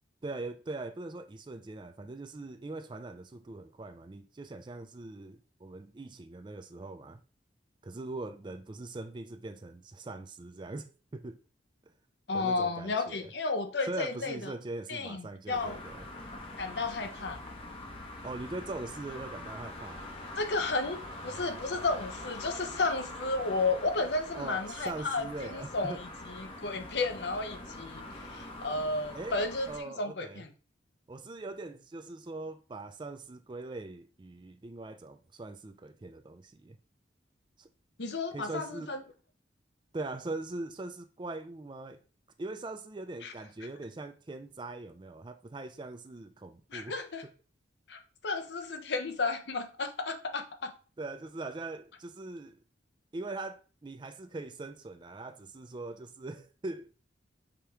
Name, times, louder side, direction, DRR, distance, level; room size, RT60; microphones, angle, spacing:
voice 1, 0.2-7.2 7.8-11.4 12.3-13.3 13.9-16.0 18.2-20.1 24.3-26.0 29.1-29.4 29.7-30.4 31.1-36.8 37.6-37.7 38.3-38.9 39.9-42.0 42.4-47.0 51.0-52.6 53.1-57.1, right 2 dB, 25° right, 0.4 m, -41 dB
voice 2, 12.3-14.5 14.9-15.8 16.6-17.4 20.4-29.7 30.0-30.5 38.0-39.0 43.2-43.3 46.7-47.2 47.9-50.7, left 3 dB, 65° left, 0.7 m, -33 dB
sound 1, 15.5-29.8, left 1 dB, 30° left, 0.8 m, -44 dB
5.0 x 3.0 x 3.5 m
head